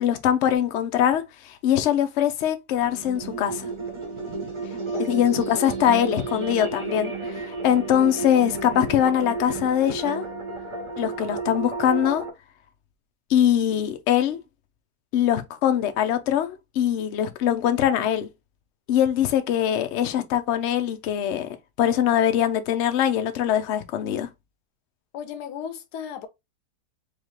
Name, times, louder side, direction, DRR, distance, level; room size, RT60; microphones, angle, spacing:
voice 1, 0.0-3.7 5.1-7.1 7.6-10.3 11.0-12.3 13.3-14.4 15.1-18.3 18.9-21.5 21.8-24.3, left 10 dB, 60° left, 0.7 m, -22 dB
sound 1, 2.7-12.3, right 3 dB, 35° right, 0.5 m, -32 dB
voice 2, 25.1-26.3, left 8 dB, 80° left, 1.2 m, -35 dB
5.0 x 2.4 x 3.1 m
omnidirectional pair, 1.7 m